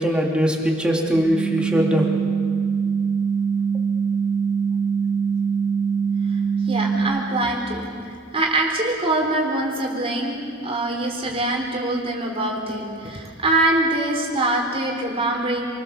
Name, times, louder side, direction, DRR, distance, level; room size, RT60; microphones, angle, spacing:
voice 1, 0.0-2.0, equal, 5° right, -2 dB, 3.1 m, -21 dB
sound 1, 1.1-7.0, right 6 dB, 90° left, 3.4 m, -23 dB
voice 2, 6.7-7.8 8.3-15.7, right 2 dB, 30° right, 0 dB, 3.7 m, -23 dB
28.0 x 21.5 x 7.1 m, 2.2 s
head